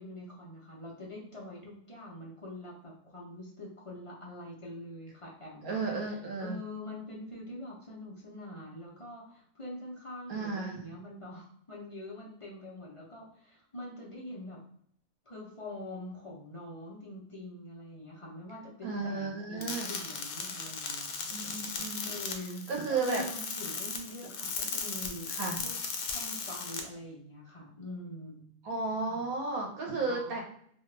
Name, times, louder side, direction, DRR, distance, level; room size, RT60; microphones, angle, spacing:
voice 1, 0.0-14.6 15.3-21.3 22.0-25.4 25.6-25.7 26.1-28.4 29.1-29.3 30.1-30.4, left 1 dB, 35° left, -4 dB, 0.5 m, -44 dB
voice 2, 5.6-6.6 10.3-10.8 18.8-20.0 21.3-22.1 22.7-23.2 25.4-25.6 28.6-30.4, right 3 dB, 75° right, 0 dB, 1.2 m, -33 dB
sound 1, 19.6-26.8, left 5 dB, 80° left, 1.0 m, -37 dB
2.8 x 2.3 x 3.2 m, 0.65 s
omnidirectional pair, 1.5 m